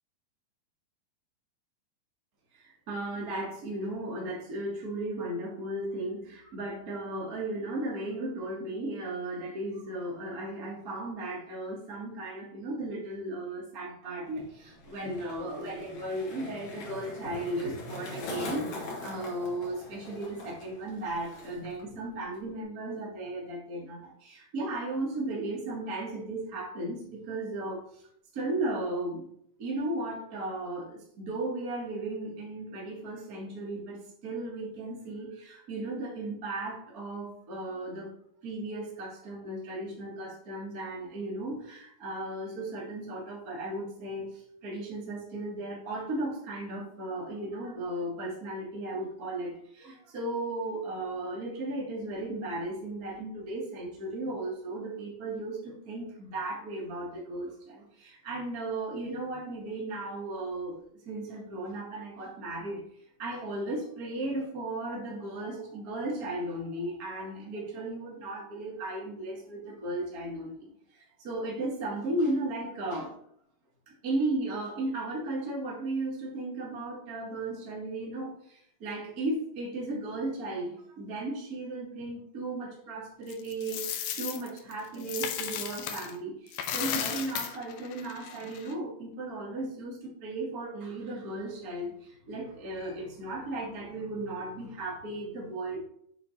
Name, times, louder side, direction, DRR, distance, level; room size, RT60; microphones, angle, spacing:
voice 1, 2.5-28.0 28.3-29.3 29.6-38.1 38.4-62.8 63.2-73.1 73.9-95.8, right 2 dB, 40° right, -2 dB, 1.3 m, -35 dB
Skateboard, 14.3-21.8 22.1-22.6, left 2 dB, 60° left, 2.5 m, -42 dB
Coin (dropping), 83.3-86.1 86.5-88.7, left 9 dB, 80° left, 1.8 m, -35 dB
7.1 x 4.2 x 4.0 m, 0.67 s
omnidirectional pair, 4.1 m